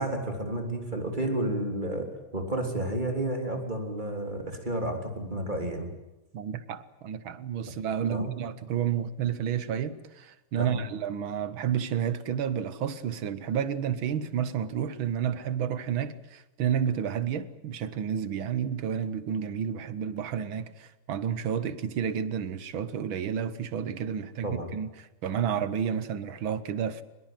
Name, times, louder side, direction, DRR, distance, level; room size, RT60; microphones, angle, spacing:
voice 1, 0.0-2.1 2.3-5.9 8.1-8.3 10.6-10.8 24.4-24.7, right 1 dB, 20° right, 3.4 m, -31 dB
voice 2, 6.3-27.0, right 8 dB, 70° right, 1.9 m, -31 dB
23.5 x 21.0 x 9.2 m
omnidirectional pair, 2.4 m